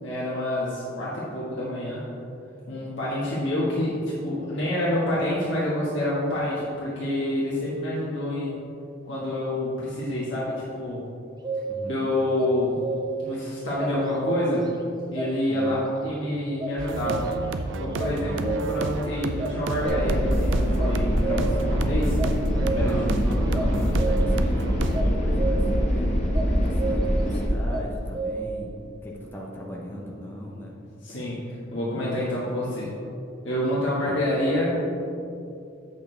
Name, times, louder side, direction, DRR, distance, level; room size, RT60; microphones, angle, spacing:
voice 1, 0.0-2.0 2.7-8.5 9.0-11.0 11.8-12.8 13.2-14.7 15.1-17.3 17.8-22.2 22.7-22.9 31.0-32.9 33.4-34.8, left 1 dB, 70° left, -8 dB, 1.6 m, -27 dB
sound 1, 11.4-11.9 12.4-13.3 13.8-14.7 15.1-16.1 16.6-17.6 18.0-18.9 19.4-20.4 20.8-21.7 22.2-23.1 23.5-24.4 24.9-25.9 26.3-27.4 27.7-28.5, right 4 dB, 20° right, 0.5 m, -30 dB
voice 2, 11.7-12.1 15.5-15.9 18.3-18.7 22.7-30.8 34.1-34.2, equal, 10° left, -3 dB, 0.8 m, -37 dB
sound 2, 16.8-25.0, right 2 dB, 70° right, 0.4 m, -31 dB
sound 3, 19.8-27.4, equal, 35° left, 1.2 m, -24 dB
8.3 x 6.6 x 3.3 m, 2.7 s
head